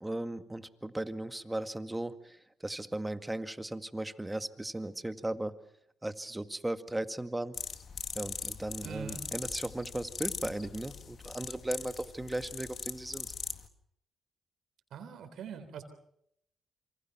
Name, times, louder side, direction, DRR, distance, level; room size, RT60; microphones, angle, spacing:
voice 1, 0.0-5.5 6.0-7.5 8.2-13.3, right 1 dB, 15° right, 9 dB, 2.0 m, -37 dB
sound 1, 7.5-13.7, left 6 dB, 55° left, 2.0 m, -41 dB
voice 2, 8.8-9.2 14.9-15.8, right 7 dB, 75° right, 7 dB, 3.6 m, -43 dB
27.5 x 25.0 x 6.0 m, 0.73 s
supercardioid pair, 55°, 0 cm